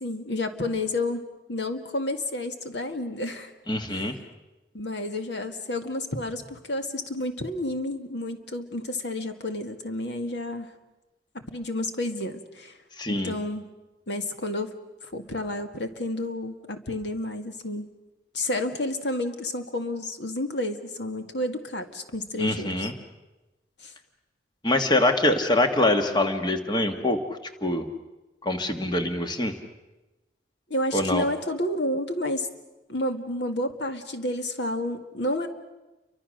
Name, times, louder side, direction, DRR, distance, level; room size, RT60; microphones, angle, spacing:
voice 1, 0.0-3.5 3.9-4.1 4.7-10.7 11.3-12.8 13.1-13.7 14.1-14.8 15.0-17.9 18.3-22.9 23.8-23.9 30.7-32.5 32.9-35.5, left 1 dB, 75° left, 6 dB, 2.0 m, -30 dB
voice 2, 3.7-4.1 13.0-13.3 22.4-22.9 24.6-27.2 27.6-27.9 28.4-29.6 30.9-31.2, left 1 dB, 25° left, 6 dB, 1.5 m, -24 dB
29.5 x 24.5 x 6.5 m, 1.1 s
head